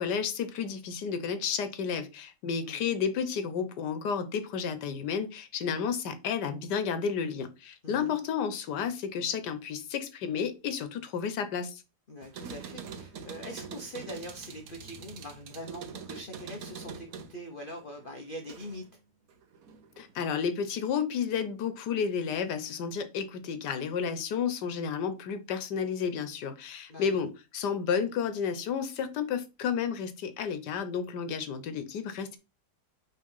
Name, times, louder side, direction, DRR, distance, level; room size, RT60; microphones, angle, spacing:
voice 1, 0.0-11.8 20.0-32.4, left 6 dB, 90° left, 1.5 m, -32 dB
voice 2, 12.1-18.8 26.9-27.2, equal, 40° left, 0.8 m, -43 dB
sound 1, 12.2-18.9 19.3-20.1, right 6 dB, 60° right, 1.2 m, -44 dB
5.6 x 3.3 x 5.5 m
omnidirectional pair, 1.8 m